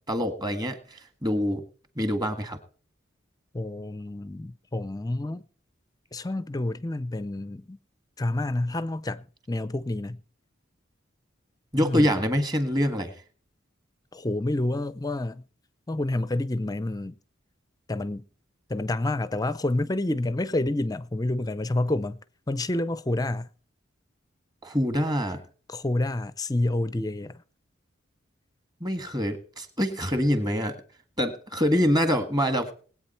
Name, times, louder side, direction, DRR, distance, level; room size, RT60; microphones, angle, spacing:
voice 1, 0.1-1.6 2.0-2.6 11.7-13.1 24.6-25.4 28.8-30.8 31.2-32.7, equal, 20° right, 1.7 m, -25 dB
voice 2, 3.5-5.4 6.1-7.8 8.2-10.2 11.8-12.2 14.1-15.4 15.9-17.2 17.9-18.3 18.7-22.2 22.5-23.5 25.7-27.4, left 2 dB, 20° left, 0.5 m, -28 dB
20.5 x 8.7 x 4.3 m
head